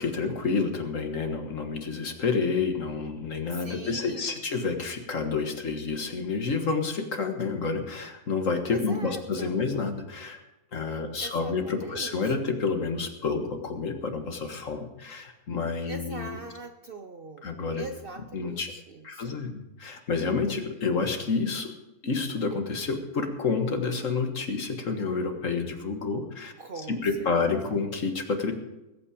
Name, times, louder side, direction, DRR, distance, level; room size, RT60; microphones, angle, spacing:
voice 1, 0.0-10.4 10.7-16.4 17.4-17.9 18.3-18.7 19.0-21.7 22.0-26.5 26.9-28.5, left 4 dB, 60° left, 5 dB, 1.9 m, -29 dB
voice 2, 3.5-4.4 8.7-9.6 10.9-12.3 15.8-17.5 17.8-19.4 26.6-27.1, right 3 dB, 50° right, 7 dB, 0.8 m, -42 dB
20.0 x 8.7 x 5.0 m, 0.97 s
omnidirectional pair, 1.6 m